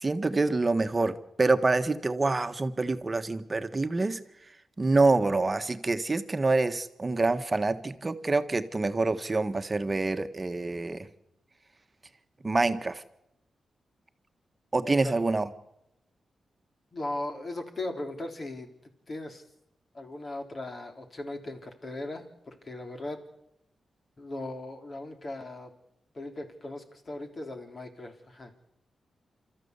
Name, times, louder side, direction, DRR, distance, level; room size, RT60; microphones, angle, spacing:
voice 1, 0.0-4.2 4.8-11.1 12.4-13.0 14.7-15.5, right 3 dB, 30° right, 9 dB, 1.4 m, -26 dB
voice 2, 16.9-18.7 19.1-19.4 19.9-23.2 24.2-25.7 26.1-28.5, left 2 dB, 45° left, 5 dB, 3.6 m, -38 dB
29.0 x 14.0 x 8.2 m, 0.88 s
cardioid pair, 90°, 0 cm